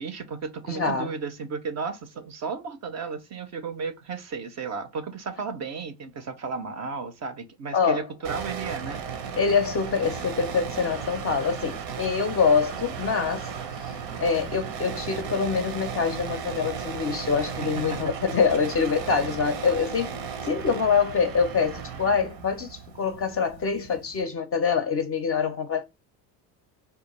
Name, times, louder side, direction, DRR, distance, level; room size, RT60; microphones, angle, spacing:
voice 1, 0.0-9.0 17.4-17.5 17.8-18.0, right 5 dB, 35° right, 0.4 m, -34 dB
voice 2, 0.7-1.1 7.7-8.0 9.4-13.5 13.8-13.9 14.2-20.1 20.4-25.8, left 5 dB, 30° left, 0.4 m, -25 dB
sound 1, 8.2-24.2, right 6 dB, 85° right, 0.7 m, -35 dB
2.2 x 2.2 x 2.9 m
hypercardioid pair, 65°, 49 cm